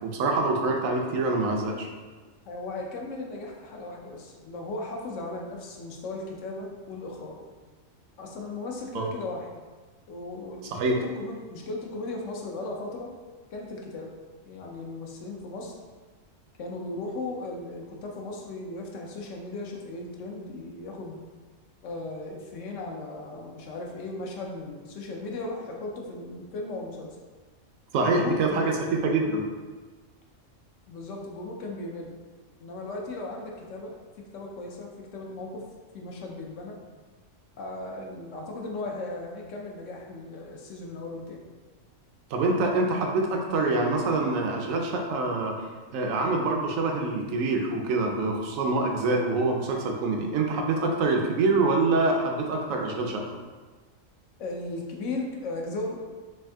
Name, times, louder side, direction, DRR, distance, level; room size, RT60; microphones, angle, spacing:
voice 1, 0.0-1.9 8.9-9.1 10.7-10.9 27.9-28.7 29.0-29.4 42.3-45.6 45.9-53.2, right 3 dB, 85° right, 1 dB, 1.0 m, -25 dB
voice 2, 2.5-7.4 8.2-9.6 10.1-13.1 13.5-14.1 14.5-15.7 16.6-21.2 21.8-27.2 28.0-28.9 30.9-32.1 32.6-33.9 34.3-35.6 35.9-36.8 37.6-41.4 54.4-56.0, left 2 dB, 75° left, 0 dB, 1.0 m, -36 dB
3.4 x 2.7 x 3.3 m, 1.4 s
omnidirectional pair, 1.3 m